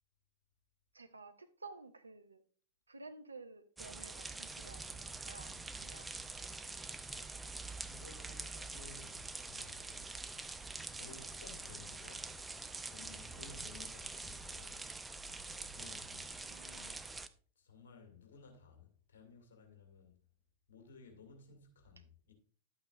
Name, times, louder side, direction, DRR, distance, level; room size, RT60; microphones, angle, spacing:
voice 1, 0.9-2.4 2.9-6.6 9.6-9.7 16.2-17.0, right 3 dB, 80° right, 0.8 m, -54 dB
sound 1, 3.8-17.3, right 3 dB, 10° right, 0.6 m, -45 dB
voice 2, 7.8-10.5 10.9-12.4 12.9-15.0 15.7-16.4 16.7-17.1 17.6-20.2 20.7-22.3, left 4 dB, 60° left, 2.4 m, -57 dB
11.5 x 8.6 x 2.5 m
figure-of-eight pair, 90°, 0 cm